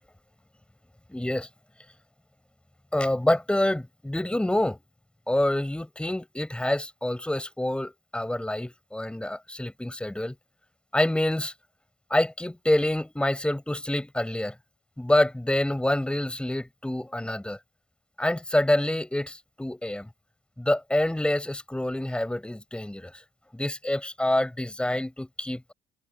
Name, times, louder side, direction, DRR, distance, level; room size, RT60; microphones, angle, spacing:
voice 1, 1.1-1.5 2.9-4.8 5.3-10.4 10.9-11.5 12.1-14.6 15.0-17.6 18.2-20.1 20.6-23.2 23.5-25.7, left 1 dB, 5° left, 5.9 m, -27 dB
cardioid pair, 110°, 17 cm